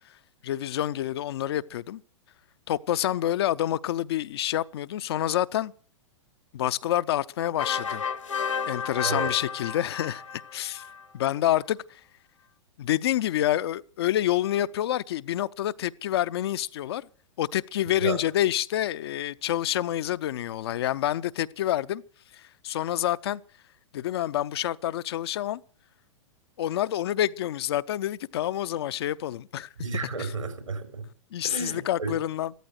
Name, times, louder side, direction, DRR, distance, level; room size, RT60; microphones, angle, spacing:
voice 1, 0.4-2.0 2.7-5.7 6.5-8.0 8.7-10.2 10.5-10.8 11.1-12.0 12.8-17.0 17.4-22.0 22.3-23.4 23.9-25.6 26.6-29.7 30.2-30.3 31.3-32.5, left 12 dB, 55° left, 0.6 m, -28 dB
sound 1, 7.6-11.0, left 6 dB, 75° left, 1.4 m, -32 dB
voice 2, 9.0-9.3 17.8-18.2 29.8-31.1 31.4-32.1, right 4 dB, 80° right, 3.9 m, -32 dB
14.5 x 13.5 x 6.5 m
figure-of-eight pair, 105°, 16 cm